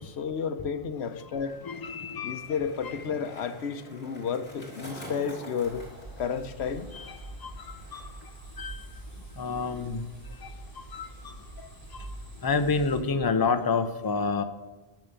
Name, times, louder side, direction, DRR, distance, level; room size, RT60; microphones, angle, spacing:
voice 1, 0.0-1.6 2.2-5.8 6.2-6.9, left 6 dB, 80° left, 10 dB, 1.0 m, -32 dB
Skateboard, 0.9-8.4 8.6-9.2, equal, 50° left, 3.6 m, -47 dB
voice 2, 1.7-2.5 6.9-7.1 7.4-8.1 8.6-8.8 9.4-10.0 10.9-11.3 12.4-14.4, left 4 dB, 25° left, 8 dB, 0.7 m, -28 dB
sound 1, 5.6-13.0, right 2 dB, 40° right, 4.6 m, -45 dB
10.5 x 6.8 x 8.8 m, 1.1 s
omnidirectional pair, 1.1 m